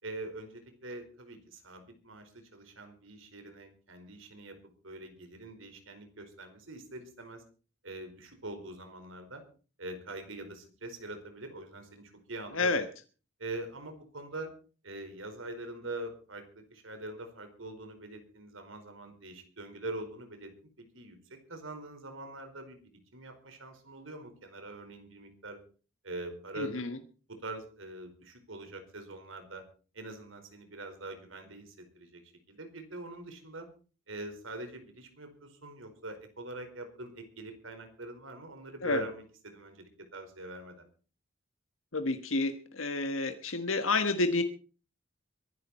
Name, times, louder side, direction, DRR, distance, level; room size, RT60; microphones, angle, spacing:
voice 1, 0.0-4.6 4.8-7.4 7.8-9.4 9.8-12.7 13.4-14.5 14.8-20.5 20.8-22.8 23.1-25.6 26.0-26.7 27.3-29.6 29.9-32.2 32.5-33.7 34.1-40.9, right 2 dB, 80° right, 6 dB, 4.8 m, -43 dB
voice 2, 12.5-12.8 26.6-27.0 38.8-39.0 41.9-44.4, left 3 dB, 90° left, 8 dB, 1.4 m, -29 dB
23.0 x 11.5 x 4.3 m, 0.38 s
head